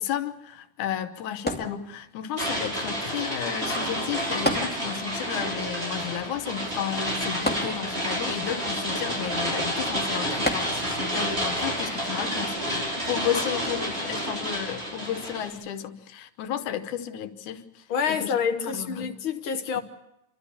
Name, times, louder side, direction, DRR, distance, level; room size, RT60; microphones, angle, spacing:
voice 1, 0.0-17.6 18.1-19.2 19.8-19.9, left 10 dB, 90° left, 2.5 m, -33 dB
sound 1, 1.5-2.4 4.4-5.3 5.6-5.7 7.5-8.3 10.4-11.2 11.9-12.0, equal, 5° left, 1.8 m, -30 dB
sound 2, 2.4-15.5, equal, 20° right, 6.0 m, -30 dB
voice 2, 17.9-19.8, left 6 dB, 60° left, 1.5 m, -27 dB
28.5 x 13.0 x 8.4 m
omnidirectional pair, 3.3 m